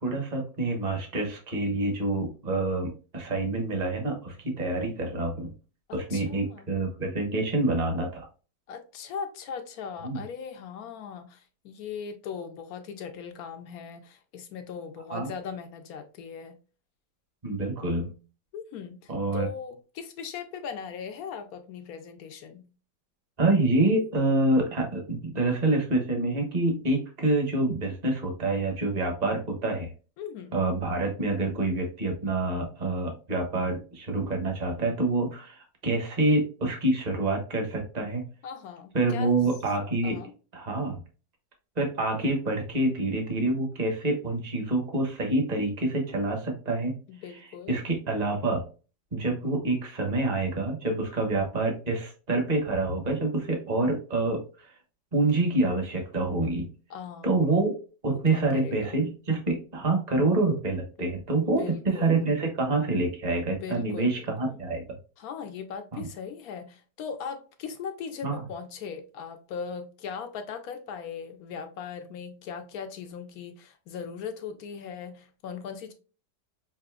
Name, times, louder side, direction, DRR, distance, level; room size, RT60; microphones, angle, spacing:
voice 1, 0.0-5.5 5.9-8.3 10.0-10.2 15.1-15.3 17.4-18.1 19.1-19.5 23.4-29.9 30.5-38.2 38.9-40.2 40.5-41.0 41.8-46.9 47.7-48.6 49.1-54.7 55.1-56.7 57.2-57.7 58.0-64.8 65.9-66.1 68.2-68.4, right 2 dB, 30° right, 0.9 m, -27 dB
voice 2, 5.9-6.7 8.7-16.6 18.5-22.7 30.2-30.6 38.4-39.4 40.0-40.3 47.1-47.8 56.9-57.4 58.1-59.0 61.0-61.1 61.4-62.3 63.5-64.6 65.2-75.9, left 6 dB, 70° left, 0.9 m, -39 dB
5.8 x 2.7 x 2.3 m
omnidirectional pair, 1.9 m